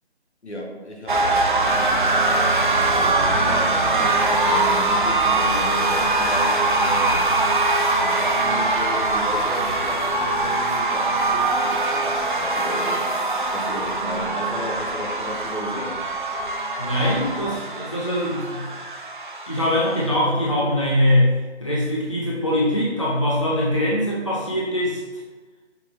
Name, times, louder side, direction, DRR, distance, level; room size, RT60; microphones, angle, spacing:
voice 1, 0.4-2.2 2.9-7.2 8.0-13.1 13.5-16.0, equal, 80° left, -1 dB, 1.1 m, -34 dB
sound 1, 1.1-20.2, right 2 dB, 45° right, 0.4 m, -22 dB
voice 2, 16.8-18.7 19.5-25.0, left 1 dB, 30° left, -5 dB, 0.4 m, -22 dB
5.6 x 2.1 x 3.4 m, 1.3 s
figure-of-eight pair, 150°, 34 cm